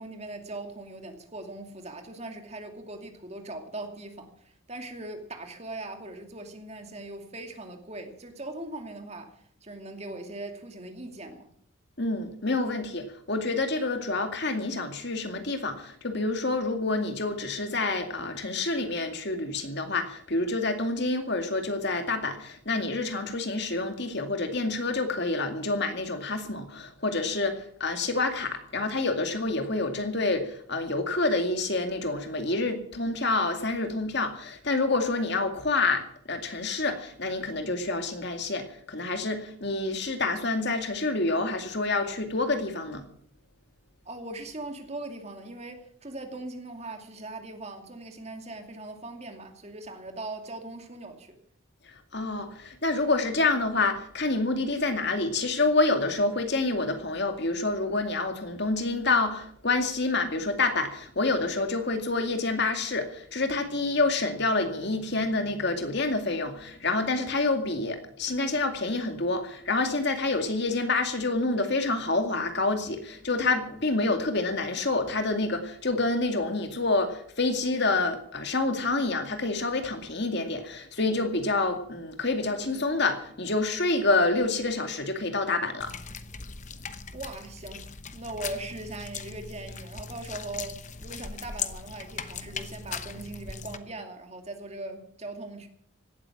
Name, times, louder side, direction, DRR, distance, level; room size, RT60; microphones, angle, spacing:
voice 1, 0.0-11.5 44.0-51.4 87.1-95.7, right 2 dB, 30° right, 2.5 m, -40 dB
voice 2, 12.0-43.0 52.1-85.9, left 3 dB, 50° left, 2.3 m, -28 dB
sound 1, 85.8-93.8, left 6 dB, 35° left, 1.0 m, -39 dB
17.0 x 13.0 x 6.0 m
head